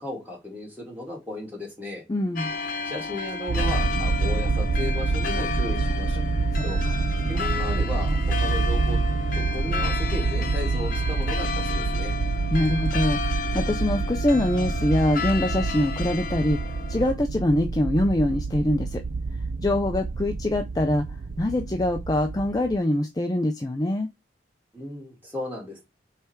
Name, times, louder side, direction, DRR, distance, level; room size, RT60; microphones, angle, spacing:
voice 1, 0.0-2.0 2.8-6.2 6.6-6.8 7.2-9.0 9.5-12.1 24.7-25.8, left 1 dB, 10° right, 2.7 m, -35 dB
voice 2, 2.1-2.5 6.5-7.0 12.5-16.6 16.9-19.0 19.6-21.1 21.4-24.1, left 1 dB, 20° left, 0.4 m, -24 dB
sound 1, 2.4-17.1, left 4 dB, 45° left, 0.8 m, -32 dB
sound 2, 3.5-22.8, right 3 dB, 60° right, 0.5 m, -27 dB
8.1 x 3.3 x 4.5 m
head